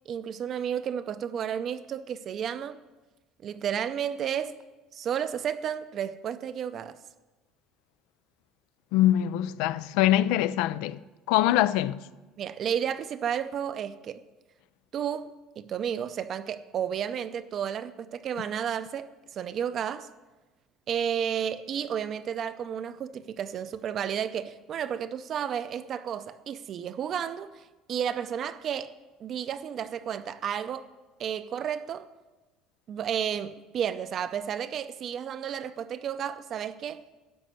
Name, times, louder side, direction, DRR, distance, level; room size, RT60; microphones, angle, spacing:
voice 1, 0.1-2.8 3.4-4.5 4.9-7.0 12.4-14.2 14.9-20.1 20.9-27.6 27.9-28.9 29.2-30.9 31.2-32.1 32.9-37.0, right 8 dB, 40° right, 0.5 m, -32 dB
voice 2, 8.9-11.0 11.3-12.0, left 13 dB, 80° left, 0.3 m, -23 dB
12.5 x 5.2 x 7.8 m
cardioid pair, 140°, 0 cm